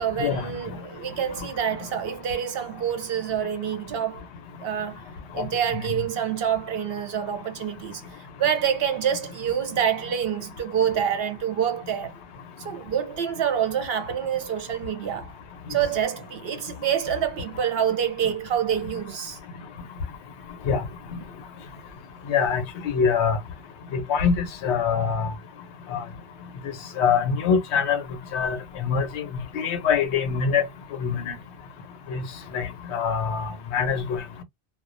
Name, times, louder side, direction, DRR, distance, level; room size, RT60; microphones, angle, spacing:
voice 1, 0.0-4.2 4.6-5.0 5.3-12.1 12.6-15.3 15.7-19.4, right 9 dB, 65° right, 0.7 m, -27 dB
voice 2, 22.3-23.4 24.1-25.3 25.9-26.0 27.0-28.0 28.3-29.0 29.5-30.6 31.0-31.3 32.1-32.2 32.5-34.2, left 6 dB, 75° left, 0.9 m, -24 dB
2.3 x 2.1 x 2.5 m
omnidirectional pair, 1.2 m